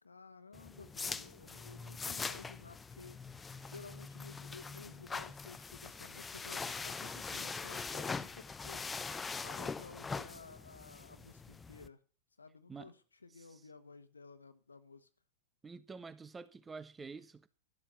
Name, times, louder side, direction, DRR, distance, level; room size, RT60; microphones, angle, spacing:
voice 1, 0.0-3.2 3.6-8.9 9.4-12.0 12.4-15.1, left 4 dB, 80° left, 1.2 m, -54 dB
sound 1, 0.5-11.9, left 4 dB, 15° left, 0.8 m, -42 dB
voice 2, 15.6-17.5, right 4 dB, 15° right, 1.1 m, -48 dB
13.0 x 12.5 x 7.0 m
figure-of-eight pair, 100°, 0 cm